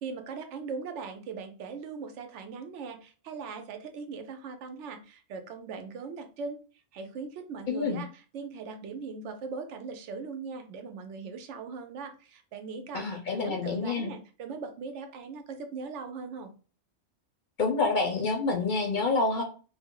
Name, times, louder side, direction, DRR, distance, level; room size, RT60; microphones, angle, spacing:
voice 1, 0.0-6.6 6.9-16.5, right 5 dB, 80° right, 6 dB, 0.9 m, -40 dB
voice 2, 7.7-8.0 12.9-14.1 17.6-19.4, left 4 dB, 55° left, 2 dB, 0.6 m, -27 dB
2.3 x 2.0 x 3.6 m, 0.37 s
omnidirectional pair, 1.2 m